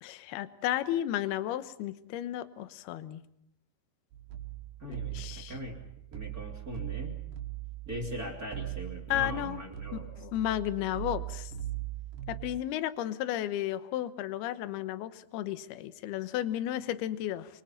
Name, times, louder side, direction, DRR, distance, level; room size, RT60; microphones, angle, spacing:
voice 1, 0.0-3.2 4.9-5.5 9.1-9.6 9.9-11.4 12.3-17.5, left 13 dB, 70° left, 12 dB, 2.7 m, -33 dB
sound 1, 4.1-12.6, right 14 dB, 70° right, 4.0 m, -40 dB
voice 2, 4.8-5.8 6.1-7.1 7.9-10.1, equal, 20° right, 0 dB, 2.8 m, -40 dB
28.5 x 24.5 x 5.8 m, 0.75 s
omnidirectional pair, 5.3 m